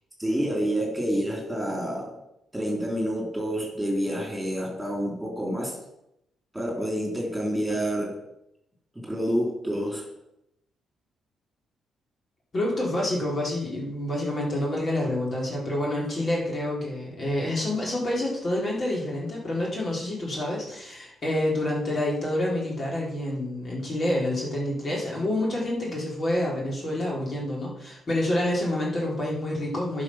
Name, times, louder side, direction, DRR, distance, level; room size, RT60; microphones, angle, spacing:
voice 1, 0.2-2.1 2.5-5.8 6.5-8.2 9.0-10.1, equal, 5° right, -1 dB, 3.4 m, -28 dB
voice 2, 12.5-30.0, left 1 dB, 40° left, -4 dB, 3.7 m, -28 dB
11.0 x 5.5 x 5.8 m, 0.83 s
cardioid pair, 90°, 0 cm